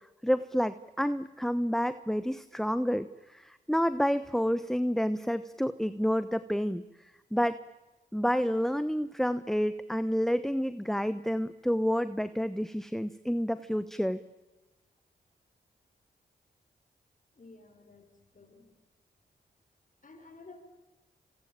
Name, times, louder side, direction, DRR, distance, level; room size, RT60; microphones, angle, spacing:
voice 1, 0.2-3.1 3.3-6.8 7.3-7.6 8.1-14.2, equal, ahead, 13 dB, 1.0 m, -29 dB
voice 2, 17.3-18.7 20.0-20.6, left 3 dB, 45° left, 4 dB, 5.9 m, -53 dB
25.5 x 24.0 x 9.0 m, 1.1 s
supercardioid pair, 45°, 19 cm